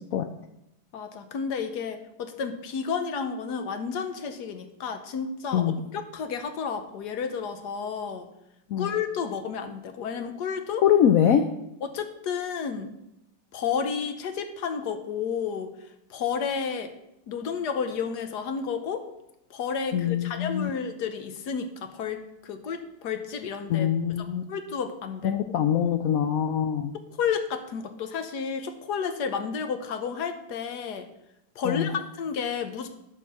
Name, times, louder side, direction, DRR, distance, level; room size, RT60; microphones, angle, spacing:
voice 1, 0.9-8.3 8.8-10.8 11.8-12.9 13.5-15.7 16.1-16.9 17.3-19.0 19.5-23.9 24.5-25.4 27.2-31.1 31.6-32.9, left 6 dB, 65° left, 8 dB, 1.3 m, -31 dB
voice 2, 10.8-11.4 19.9-20.7 23.7-24.4 25.2-26.9 31.6-31.9, left 9 dB, 90° left, 8 dB, 0.7 m, -23 dB
12.0 x 4.5 x 6.1 m, 0.87 s
omnidirectional pair, 2.1 m